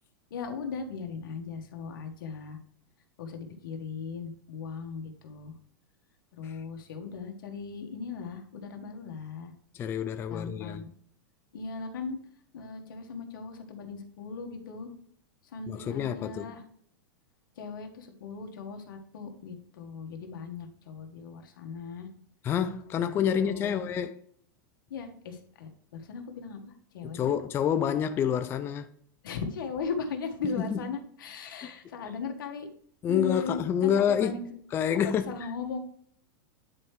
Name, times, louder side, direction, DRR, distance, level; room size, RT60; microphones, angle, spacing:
voice 1, 0.3-2.6 3.2-5.5 6.3-9.5 10.3-10.9 11.5-12.2 12.5-14.9 15.5-16.6 17.6-22.1 22.9-23.8 24.9-27.4 29.2-32.7 33.1-34.5 34.9-35.8, left 5 dB, 80° left, 1.5 m, -38 dB
voice 2, 9.7-10.8 15.7-16.5 22.4-24.2 27.0-28.9 30.4-30.8 31.6-31.7 33.0-34.4 34.7-35.3, left 8 dB, 20° left, 0.4 m, -28 dB
9.6 x 4.6 x 3.3 m
supercardioid pair, 140°, 11 cm